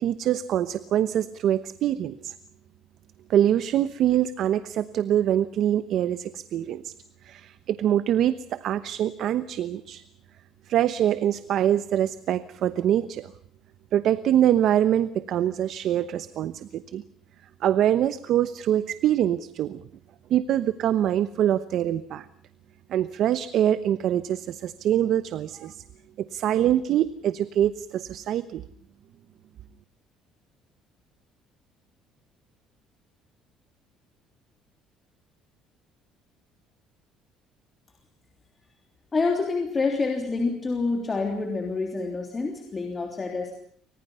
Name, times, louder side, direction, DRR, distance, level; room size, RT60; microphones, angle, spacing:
voice 1, 0.0-2.3 3.3-6.9 7.2-10.0 10.7-13.3 13.9-17.0 17.6-19.8 20.3-22.3 22.9-25.8 26.2-28.6, right 11 dB, 50° right, 14 dB, 1.0 m, -24 dB
voice 2, 39.1-43.5, left 3 dB, 20° left, 2 dB, 3.3 m, -27 dB
29.5 x 25.0 x 5.7 m, 0.62 s
cardioid pair, 165°, 0 cm